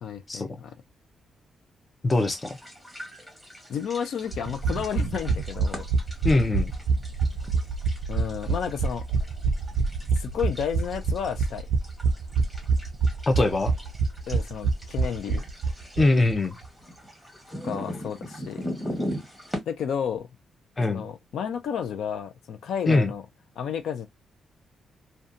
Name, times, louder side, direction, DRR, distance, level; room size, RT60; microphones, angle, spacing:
voice 1, 0.0-0.8 3.7-5.9 8.1-9.1 10.1-11.7 14.3-15.5 17.6-18.7 19.7-20.3 20.9-23.2 23.6-24.1, left 8 dB, 75° left, 0.4 m, -31 dB
voice 2, 2.0-2.5 6.2-6.7 13.3-13.7 16.0-16.6 20.8-21.1 22.9-23.1, left 2 dB, 25° left, 0.5 m, -22 dB
sound 1, 2.1-19.6, equal, 5° left, 1.2 m, -40 dB
sound 2, 4.3-16.0 16.3-16.4 16.6-16.7, right 4 dB, 75° right, 0.4 m, -26 dB
2.7 x 2.2 x 2.4 m
cardioid pair, 130°, 0 cm